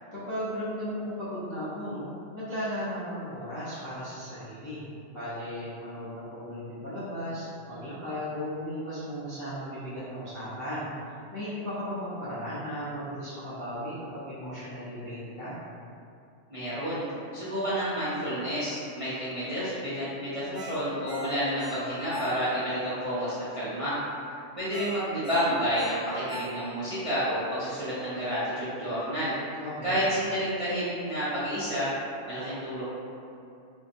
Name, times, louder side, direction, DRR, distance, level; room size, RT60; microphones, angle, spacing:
voice 1, 0.1-4.8 5.1-10.9 11.3-15.5 29.6-30.0, equal, 25° left, -14 dB, 0.4 m, -36 dB
voice 2, 16.5-17.0 17.3-24.0 24.6-29.3 29.8-31.9 32.3-32.9, equal, 55° right, -13 dB, 0.3 m, -30 dB
Ringtone, 20.5-22.8 23.2-23.3 24.7-27.0 27.4-27.5, left 1 dB, 80° left, 0.9 m, -40 dB
2.6 x 2.1 x 2.5 m, 2.6 s
omnidirectional pair, 1.3 m